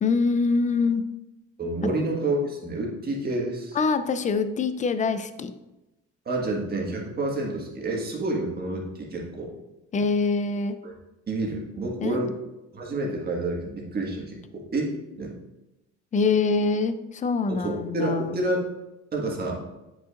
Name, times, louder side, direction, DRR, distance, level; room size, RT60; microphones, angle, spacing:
voice 1, 0.0-1.0 3.8-5.5 9.9-10.8 12.0-12.3 16.1-18.4, left 4 dB, 25° left, 11 dB, 0.4 m, -24 dB
voice 2, 1.6-3.8 6.2-9.5 10.8-10.9 11.3-12.3 12.7-15.3 17.5-18.7 19.1-19.6, right 2 dB, 30° right, -2 dB, 1.7 m, -29 dB
9.2 x 5.5 x 2.5 m, 0.98 s
cardioid pair, 130°, 30 cm